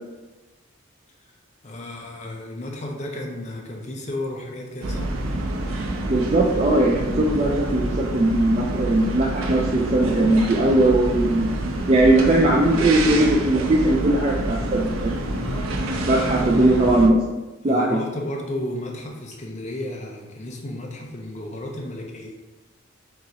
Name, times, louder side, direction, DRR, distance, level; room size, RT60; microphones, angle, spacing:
voice 1, 1.6-5.1 15.2-17.0 17.7-22.3, left 1 dB, 35° left, 0 dB, 0.6 m, -33 dB
sound 1, 4.8-17.1, right 1 dB, 85° right, 0.5 m, -27 dB
voice 2, 6.1-11.5 11.9-15.1 16.1-17.2 17.6-18.0, right 1 dB, 30° right, -3 dB, 0.4 m, -19 dB
5.5 x 2.5 x 2.9 m, 1.1 s
head